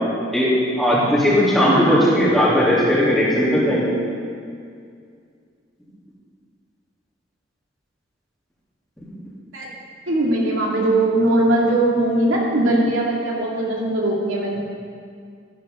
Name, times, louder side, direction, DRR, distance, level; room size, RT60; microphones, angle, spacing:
voice 1, 0.8-3.9, equal, ahead, -9 dB, 3.3 m, -17 dB
voice 2, 1.7-2.1 9.5-9.7 10.1-14.6, right 1 dB, 90° right, -3 dB, 2.6 m, -20 dB
14.0 x 12.5 x 3.9 m, 2.2 s
head